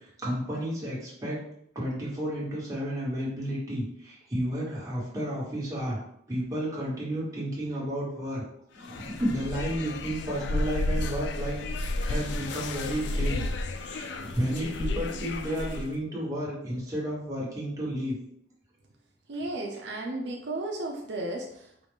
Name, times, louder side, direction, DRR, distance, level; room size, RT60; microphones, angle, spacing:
voice 1, 0.0-1.4 1.7-6.0 6.3-8.4 8.7-13.4 13.7-18.1, equal, 20° right, -7 dB, 1.4 m, -32 dB
sound 1, 8.8-16.0, left 2 dB, 75° left, 0.4 m, -32 dB
voice 2, 19.3-21.9, right 2 dB, 75° right, 0 dB, 0.6 m, -34 dB
4.8 x 2.4 x 3.5 m, 0.72 s
head